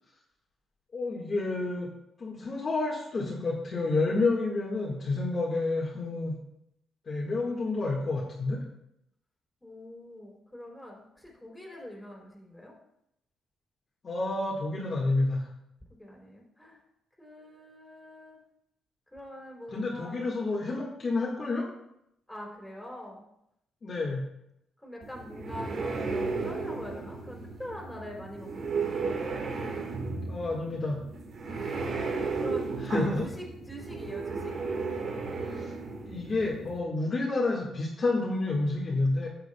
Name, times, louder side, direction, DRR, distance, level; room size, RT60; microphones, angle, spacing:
voice 1, 0.9-1.9 2.2-6.3 7.1-8.6 14.0-15.5 19.7-21.7 23.8-24.3 30.3-31.0 32.8-33.2 35.5-35.7 36.1-39.3, left 2 dB, 40° left, -3 dB, 1.6 m, -29 dB
voice 2, 9.6-12.7 15.9-16.8 17.2-18.4 19.1-20.2 22.3-23.2 24.8-29.3 31.5-34.6, left 1 dB, 5° left, -2 dB, 3.4 m, -43 dB
sound 1, 25.0-36.8, right 4 dB, 55° right, 1.6 m, -34 dB
12.0 x 7.9 x 2.3 m, 0.79 s
cardioid pair, 90°, 0 cm